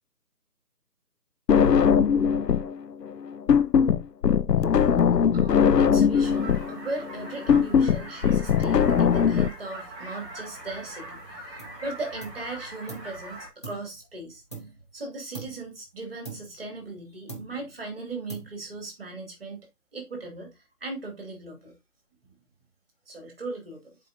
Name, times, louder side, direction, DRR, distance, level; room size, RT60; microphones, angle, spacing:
sound 1, 1.5-2.7 3.0-9.5, left 7 dB, 85° left, 0.7 m, -20 dB
voice 1, 5.3-14.4 14.9-19.7 19.9-21.8 22.2-22.3 23.1-24.0, right 2 dB, 35° right, 2.5 m, -38 dB
sound 2, 6.1-13.5, right 1 dB, 5° right, 1.5 m, -42 dB
sound 3, 11.6-11.9 12.2-13.2 13.6-15.0 15.3-15.8 16.2-17.0 17.3-17.8 18.3-18.8, right 3 dB, 15° left, 0.9 m, -43 dB
12.0 x 4.8 x 2.7 m
figure-of-eight pair, 170°, 48 cm